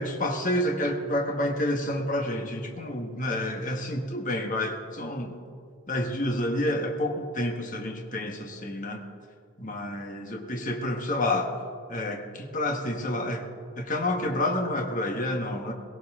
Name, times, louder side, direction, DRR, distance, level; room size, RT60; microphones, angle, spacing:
voice 1, 0.0-5.4 5.9-9.0 9.6-11.5 11.9-13.4 13.8-15.7, left 1 dB, 35° left, 2 dB, 1.4 m, -29 dB
17.5 x 16.5 x 3.7 m, 2.1 s
head